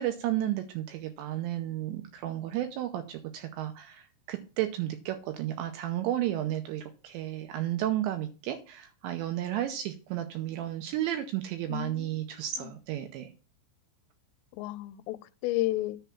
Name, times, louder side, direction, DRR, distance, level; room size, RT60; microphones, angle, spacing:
voice 1, 0.0-13.3, right 12 dB, 85° right, 2.6 m, -33 dB
voice 2, 11.7-12.7 14.5-16.0, left 16 dB, 90° left, 3.1 m, -33 dB
10.0 x 3.4 x 6.9 m
omnidirectional pair, 5.7 m